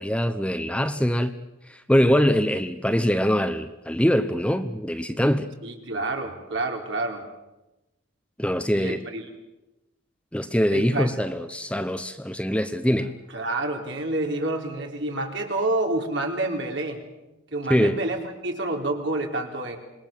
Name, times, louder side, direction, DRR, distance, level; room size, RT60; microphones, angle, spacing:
voice 1, 0.0-1.4 1.7-5.5 8.4-9.0 10.3-13.1 17.7-18.0, equal, 5° left, 9 dB, 0.9 m, -23 dB
voice 2, 5.6-7.3 8.7-9.2 10.7-11.1 13.3-17.0 17.5-19.8, right 2 dB, 65° right, 2 dB, 4.1 m, -28 dB
26.5 x 21.5 x 7.4 m, 1.0 s
head